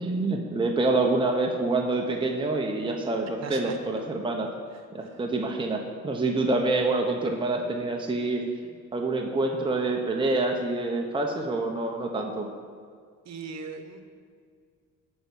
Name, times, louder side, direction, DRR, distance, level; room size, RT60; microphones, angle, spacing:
voice 1, 0.0-4.5 4.9-8.4 8.9-12.5, right 2 dB, 15° right, 1 dB, 1.0 m, -27 dB
voice 2, 3.4-3.8 4.7-5.2 13.2-14.0, right 5 dB, 60° right, 7 dB, 1.1 m, -40 dB
11.0 x 4.7 x 7.2 m, 2.1 s
cardioid pair, 90°, 30 cm